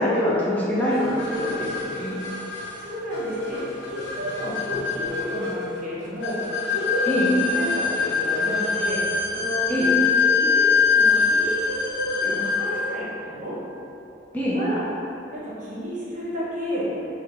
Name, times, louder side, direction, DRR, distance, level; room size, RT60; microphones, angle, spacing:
voice 1, 0.0-2.2 7.1-7.3 9.7-9.9 14.3-14.6, left 1 dB, 10° left, -9 dB, 0.4 m, -24 dB
sound 1, 0.9-12.8, left 5 dB, 75° left, 0.5 m, -24 dB
voice 2, 2.8-13.5 14.5-14.8 15.3-16.8, equal, 45° right, -8 dB, 0.8 m, -31 dB
4.8 x 2.2 x 2.4 m, 2.9 s
head